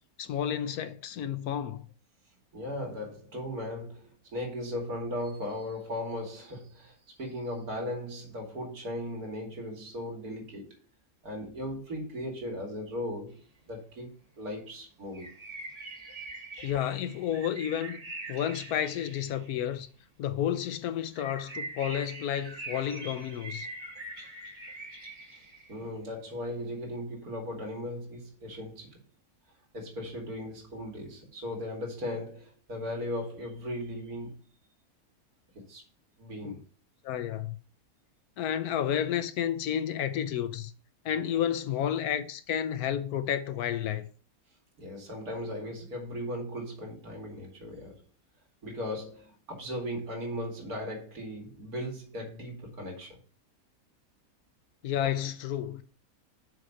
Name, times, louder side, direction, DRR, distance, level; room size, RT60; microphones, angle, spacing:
voice 1, 0.2-1.9 16.6-18.0 18.3-19.9 20.2-23.7 36.4-36.6 37.0-37.6 38.4-40.7 41.0-44.1 54.8-55.8, left 10 dB, 90° left, 1.2 m, -31 dB
voice 2, 2.5-10.8 11.2-13.4 13.6-15.3 25.7-29.0 29.7-34.4 35.7-35.8 36.2-36.6 44.8-48.0 48.6-53.2, left 1 dB, 80° right, 2.8 m, -37 dB
sound 1, 15.1-19.8 21.1-25.9, right 2 dB, 25° right, 1.5 m, -43 dB
6.5 x 4.8 x 5.5 m
omnidirectional pair, 1.5 m